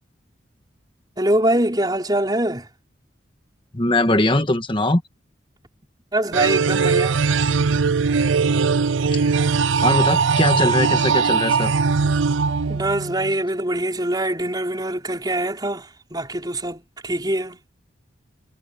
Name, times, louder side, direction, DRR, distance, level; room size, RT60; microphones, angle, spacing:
voice 1, 1.2-2.7 6.1-7.2 12.7-17.6, right 1 dB, 20° right, 5.1 m, -23 dB
voice 2, 3.7-5.0 9.1-9.2 9.8-11.7, left 2 dB, 25° left, 1.5 m, -20 dB
sound 1, 6.3-13.3, right 5 dB, 85° right, 0.5 m, -20 dB
head